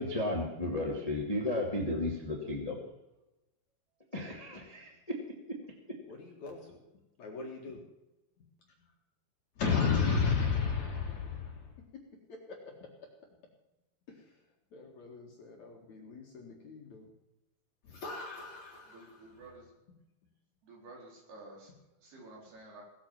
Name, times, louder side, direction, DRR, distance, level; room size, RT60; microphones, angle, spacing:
voice 1, 0.0-2.8 4.1-4.9, left 1 dB, 25° left, 1 dB, 0.8 m, -33 dB
voice 2, 6.1-6.8 7.2-7.8 9.6-11.7 12.5-12.8 14.7-17.1 17.8-19.2, left 5 dB, 50° left, 0 dB, 2.6 m, -34 dB
voice 3, 18.9-19.7 20.6-21.7 22.0-22.8, right 2 dB, 60° right, -1 dB, 5.9 m, -51 dB
17.5 x 8.7 x 7.4 m, 0.98 s
omnidirectional pair, 5.2 m